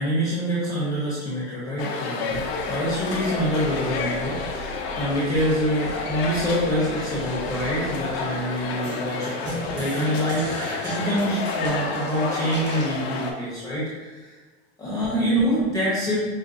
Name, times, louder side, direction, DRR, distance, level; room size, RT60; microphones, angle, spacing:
voice 1, 0.0-14.4 14.8-16.2, equal, 10° left, -7 dB, 0.9 m, -26 dB
sound 1, 1.8-13.3, left 4 dB, 70° left, 0.7 m, -30 dB
sound 2, 2.3-8.9, right 3 dB, 55° right, 1.5 m, -41 dB
sound 3, 8.8-13.0, right 1 dB, 35° right, 1.3 m, -35 dB
5.3 x 2.1 x 2.6 m, 1.4 s
supercardioid pair, 130°, 32 cm